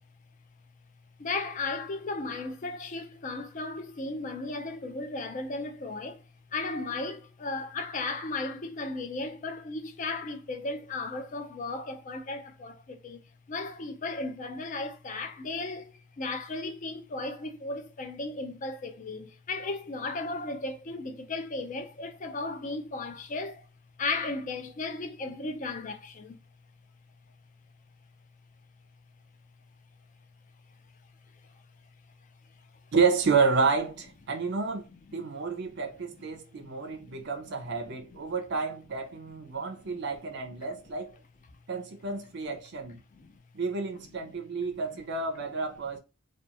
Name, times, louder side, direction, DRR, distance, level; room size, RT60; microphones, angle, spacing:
voice 1, 1.2-6.2 6.5-13.2 13.5-23.7 24.0-26.4 35.6-35.7 36.5-37.3 37.6-38.0 39.8-39.9 40.7-40.8 42.5-42.6 43.1-43.4, left 3 dB, 35° left, 0.4 m, -35 dB
voice 2, 32.9-41.1 41.7-43.0 43.5-46.0, right 4 dB, 50° right, 0.4 m, -30 dB
2.8 x 2.2 x 2.4 m
head